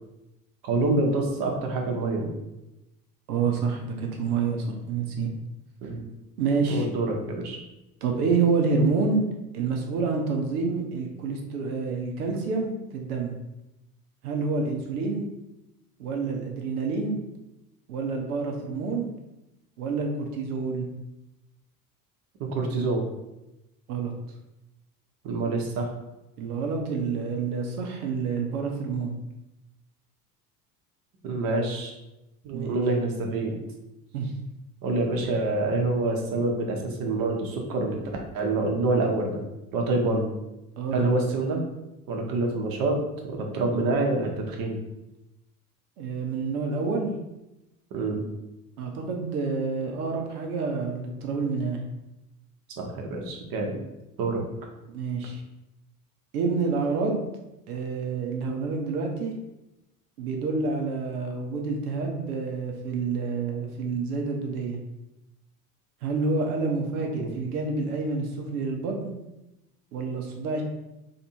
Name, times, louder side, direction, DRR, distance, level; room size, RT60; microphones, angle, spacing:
voice 1, 0.6-2.3 5.8-6.0 6.7-7.6 22.4-23.0 25.2-25.9 31.2-31.9 32.4-33.5 34.8-38.0 38.3-39.4 39.7-40.3 40.9-41.6 42.1-44.8 47.9-48.2 52.8-53.8 54.2-54.4 67.2-67.3, right 2 dB, 45° right, 1 dB, 1.1 m, -26 dB
voice 2, 3.3-5.3 6.4-6.9 8.0-9.2 9.5-13.3 14.2-15.2 16.0-17.2 17.9-19.1 19.8-20.9 23.9-24.1 26.4-29.1 32.5-32.8 34.1-34.3 35.2-35.3 40.8-41.1 46.0-47.1 48.8-51.8 54.9-55.4 56.3-57.3 57.7-59.3 60.2-64.8 66.0-69.1 69.9-70.6, right 4 dB, 70° right, 2 dB, 0.9 m, -28 dB
3.4 x 2.7 x 4.3 m, 0.94 s
figure-of-eight pair, 65°, 46 cm